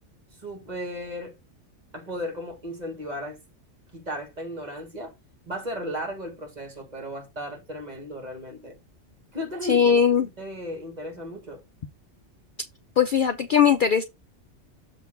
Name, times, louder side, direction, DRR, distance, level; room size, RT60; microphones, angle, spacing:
voice 1, 0.4-1.3 1.9-3.4 3.9-5.1 5.5-8.8 9.3-10.0 10.4-11.6, equal, 35° right, 1.8 m, -35 dB
voice 2, 9.6-10.3 13.0-14.0, left 7 dB, 55° left, 0.6 m, -19 dB
7.1 x 3.0 x 5.8 m
omnidirectional pair, 1.3 m